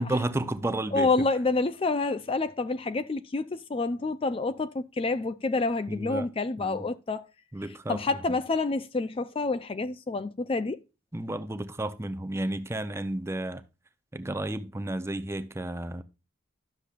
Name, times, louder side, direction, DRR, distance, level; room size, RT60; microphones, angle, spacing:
voice 1, 0.0-1.3 5.9-6.3 6.6-6.9 7.5-8.0 11.1-13.6 14.1-16.0, right 1 dB, 15° right, 0.6 m, -32 dB
voice 2, 0.9-7.3 7.9-10.8, left 3 dB, 30° left, 0.4 m, -28 dB
12.0 x 7.0 x 2.4 m
head